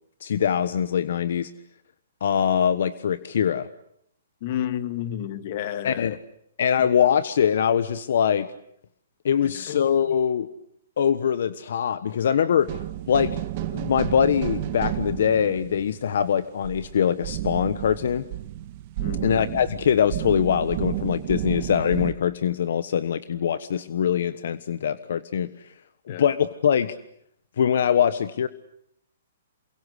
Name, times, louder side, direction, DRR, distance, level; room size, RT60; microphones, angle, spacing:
voice 1, 0.2-1.5 2.2-3.7 5.8-6.1 6.6-8.5 9.2-10.5 11.0-12.7 13.1-18.2 19.2-25.7 26.2-27.0 27.6-28.5, left 8 dB, 65° left, 1.3 m, -23 dB
voice 2, 4.4-6.3 6.8-6.9 9.4-9.8 12.5-12.7 19.0-19.8 26.1-26.3, left 11 dB, 45° left, 2.2 m, -32 dB
sound 1, 12.6-22.1, right 14 dB, 40° right, 1.7 m, -32 dB
28.5 x 23.5 x 8.3 m
hypercardioid pair, 150°, 0 cm